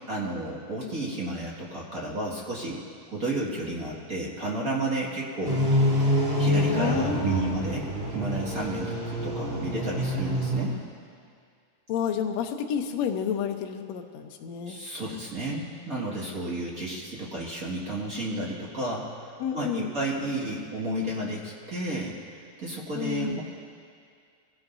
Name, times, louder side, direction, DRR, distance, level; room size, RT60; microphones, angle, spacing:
voice 1, 0.1-2.8 3.1-5.6 6.4-10.7 14.7-23.4, right 1 dB, 35° right, -5 dB, 1.5 m, -32 dB
sound 1, 5.4-10.7, equal, 15° right, 3.1 m, -26 dB
voice 2, 6.7-7.7 11.9-14.8 19.4-19.9 22.9-23.4, left 7 dB, 80° left, 4 dB, 1.5 m, -30 dB
24.5 x 17.0 x 2.7 m, 2.2 s
omnidirectional pair, 4.4 m